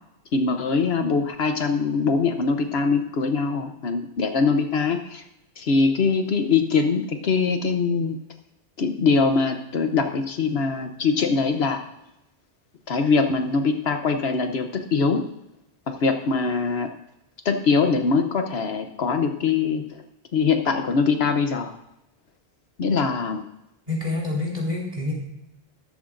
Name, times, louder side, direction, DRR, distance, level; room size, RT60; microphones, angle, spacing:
voice 1, 0.3-5.2 5.6-8.2 8.8-11.8 12.9-15.2 15.9-16.9 17.4-20.0 20.3-21.7 22.8-23.4, left 4 dB, 65° left, 6 dB, 1.1 m, -22 dB
voice 2, 23.9-25.1, left 2 dB, 35° right, -4 dB, 4.0 m, -27 dB
13.5 x 12.0 x 2.6 m, 0.87 s
omnidirectional pair, 1.1 m